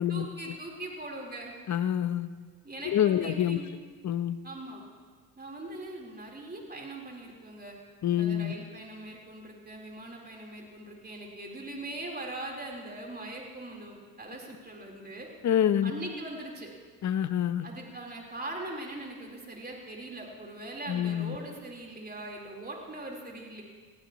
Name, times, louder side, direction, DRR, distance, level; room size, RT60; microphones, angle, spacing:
voice 1, 0.1-1.5 2.6-3.7 4.4-4.8 5.4-7.8 8.2-15.3 15.8-16.7 17.6-23.6, right 2 dB, 25° right, -2 dB, 4.2 m, -41 dB
voice 2, 1.7-2.3 2.8-3.6 4.0-4.4 8.0-8.5 15.4-15.9 17.0-17.7 20.9-21.4, left 10 dB, 45° left, 13 dB, 0.8 m, -26 dB
21.0 x 15.0 x 3.1 m, 1.6 s
hypercardioid pair, 60°, 41 cm